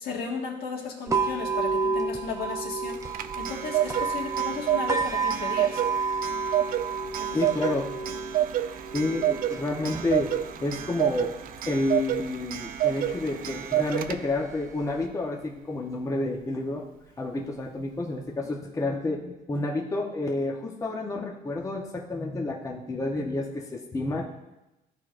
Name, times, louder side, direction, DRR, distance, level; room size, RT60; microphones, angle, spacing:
voice 1, 0.0-3.0 3.4-5.8 7.2-7.4 18.4-18.5, left 4 dB, 65° left, -1 dB, 1.6 m, -35 dB
sound 1, 1.1-15.1, right 4 dB, 20° right, 0.7 m, -32 dB
Clock, 2.9-14.5, right 12 dB, 60° right, 0.4 m, -29 dB
voice 2, 7.3-7.9 8.9-10.3 10.6-11.3 11.7-16.8 17.2-24.2, left 2 dB, 20° left, -1 dB, 0.9 m, -30 dB
13.5 x 4.6 x 2.5 m, 0.99 s
cardioid pair, 110°, 17 cm